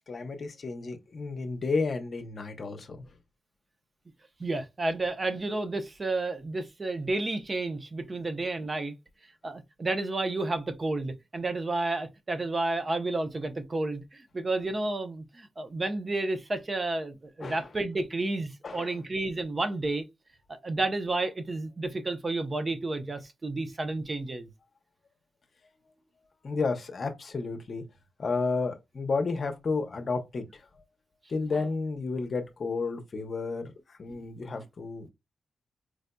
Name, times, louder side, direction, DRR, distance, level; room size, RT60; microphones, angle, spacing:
voice 1, 0.1-3.0 17.4-17.7 18.6-18.9 26.4-27.8 28.2-30.4 31.3-35.1, left 4 dB, 55° left, 0.7 m, -32 dB
voice 2, 4.4-8.9 9.4-20.0 20.5-24.5 31.5-31.7, right 2 dB, 35° right, 0.6 m, -31 dB
4.6 x 2.5 x 2.2 m
cardioid pair, 85°, 0 cm